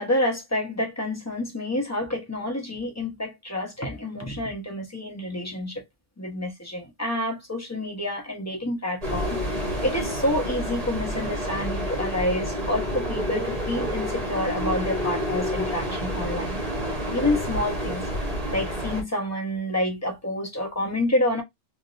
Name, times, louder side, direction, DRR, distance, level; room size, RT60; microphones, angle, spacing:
voice 1, 0.0-5.8 6.2-16.6 17.1-18.1 18.5-21.4, left 1 dB, 15° left, 0.9 m, -28 dB
sound 1, 9.0-19.0, equal, 30° right, 1.2 m, -29 dB
3.6 x 2.9 x 2.5 m
omnidirectional pair, 1.3 m